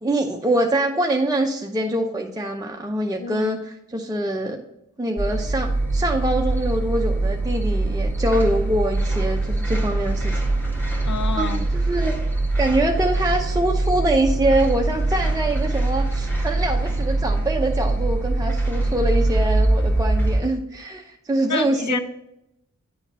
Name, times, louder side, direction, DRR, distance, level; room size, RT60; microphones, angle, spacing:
voice 1, 0.0-4.6 5.0-10.4 11.4-12.1 12.6-22.0, right 1 dB, 10° right, 1 dB, 0.6 m, -24 dB
voice 2, 3.2-3.5 11.0-11.7 21.5-22.0, left 5 dB, 70° left, 11 dB, 0.6 m, -28 dB
sound 1, 5.2-20.4, right 2 dB, 5° left, 1.7 m, -23 dB
9.2 x 3.8 x 4.1 m, 0.84 s
wide cardioid pair, 75°, 30 cm